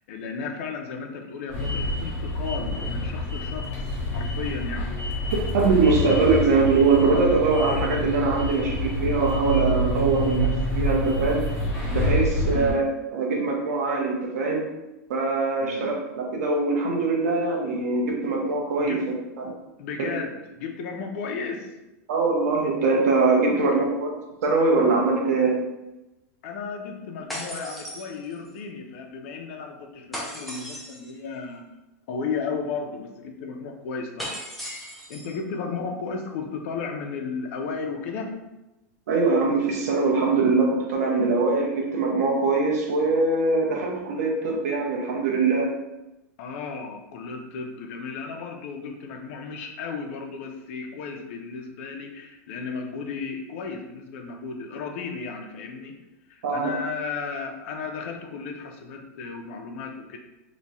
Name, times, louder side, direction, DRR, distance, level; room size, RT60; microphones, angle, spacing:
voice 1, 0.1-4.9 12.5-12.8 15.6-15.9 18.8-19.0 19.8-21.7 23.5-23.6 26.4-31.6 32.1-34.4 35.1-38.4 46.4-56.0 56.3-60.2, left 5 dB, 55° left, 2 dB, 0.6 m, -34 dB
sound 1, 1.5-12.7, left 1 dB, 25° left, 1.4 m, -27 dB
voice 2, 5.5-11.4 11.9-12.8 13.1-14.6 15.1-19.0 19.4-19.5 20.0-20.1 22.1-24.1 24.4-25.6 39.1-45.7 56.4-56.7, right 3 dB, 85° right, -1 dB, 0.9 m, -22 dB
sound 2, 27.3-28.6 30.1-31.1 34.2-35.4, equal, ahead, 0.5 m, -36 dB
3.1 x 2.3 x 4.1 m, 0.98 s
supercardioid pair, 160°, 8 cm